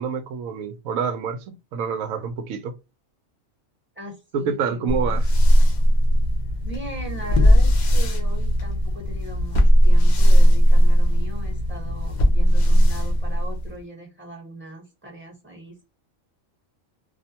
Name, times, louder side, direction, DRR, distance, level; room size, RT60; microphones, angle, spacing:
voice 1, 0.0-2.7 4.3-5.3, right 6 dB, 85° right, 1.0 m, -27 dB
voice 2, 3.9-5.2 6.6-15.8, right 1 dB, 10° right, 0.9 m, -39 dB
sound 1, 4.9-13.8, equal, 60° left, 0.4 m, -17 dB
2.5 x 2.1 x 2.7 m
omnidirectional pair, 1.4 m